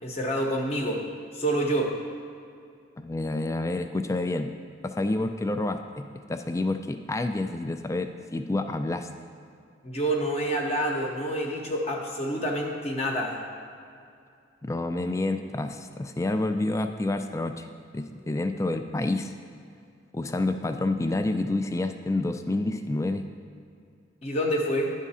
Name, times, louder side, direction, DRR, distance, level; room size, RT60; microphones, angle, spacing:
voice 1, 0.0-1.0 1.3-1.9 9.8-13.4 24.2-24.9, right 1 dB, 35° left, 0 dB, 0.9 m, -27 dB
voice 2, 3.0-4.5 4.8-9.1 14.6-17.7 17.9-19.3 20.1-23.2, left 2 dB, 15° left, 8 dB, 0.3 m, -28 dB
11.0 x 3.6 x 5.5 m, 2.4 s
head